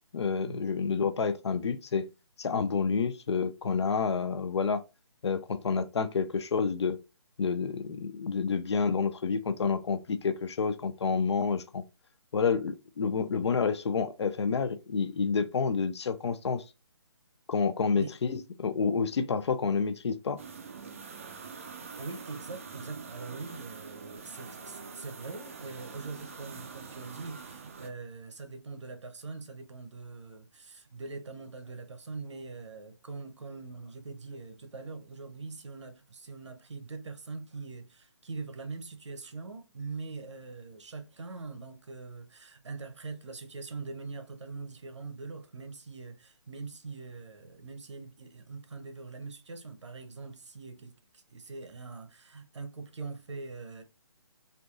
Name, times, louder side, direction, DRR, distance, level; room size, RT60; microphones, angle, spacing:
voice 1, 0.1-2.1 2.4-4.8 5.2-7.0 7.4-11.8 12.3-16.6 17.5-20.4, left 5 dB, 70° left, 0.5 m, -29 dB
sound 1, 20.4-27.9, right 5 dB, 30° right, 0.3 m, -45 dB
voice 2, 22.0-53.8, right 3 dB, 90° right, 0.8 m, -42 dB
3.4 x 2.6 x 2.4 m
hypercardioid pair, 170°, 15 cm